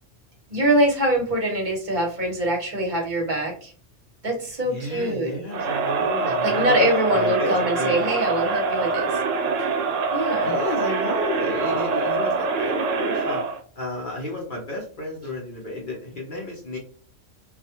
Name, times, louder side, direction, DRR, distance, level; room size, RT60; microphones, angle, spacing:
voice 1, 0.5-3.7 4.2-5.4 6.4-9.1 9.6-9.7 10.1-10.5, right 1 dB, 45° right, 0 dB, 0.9 m, -23 dB
voice 2, 4.6-8.0 10.4-13.4 13.8-16.8, left 2 dB, 50° left, -3 dB, 0.8 m, -32 dB
Crowd, 5.5-13.6, right 4 dB, 85° right, 0.9 m, -24 dB
2.4 x 2.3 x 2.7 m, 0.43 s
omnidirectional pair, 1.3 m